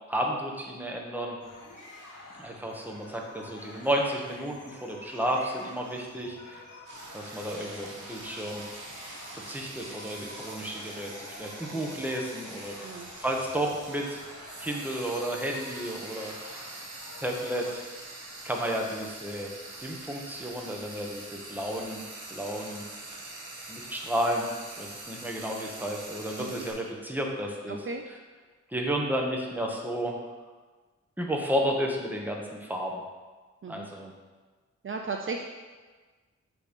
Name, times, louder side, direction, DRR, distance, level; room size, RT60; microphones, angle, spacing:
voice 1, 0.1-1.4 2.4-6.6 7.1-8.6 9.3-12.7 13.2-14.2 14.6-16.7 17.2-17.8 18.4-19.5 19.8-22.0 22.3-22.8 23.7-24.5 24.8-27.8 28.7-30.2 31.2-33.0 33.7-34.1, equal, 5° right, 0 dB, 1.1 m, -32 dB
sound 1, 1.4-17.7, left 2 dB, 85° left, 1.5 m, -48 dB
Frying (food), 6.9-26.7, right 2 dB, 85° right, 1.2 m, -44 dB
voice 2, 12.8-13.1 26.4-26.6 27.7-28.0 33.6-33.9 34.8-35.4, right 4 dB, 45° right, 2 dB, 0.5 m, -36 dB
7.8 x 3.2 x 5.1 m, 1.4 s
wide cardioid pair, 75°, 30 cm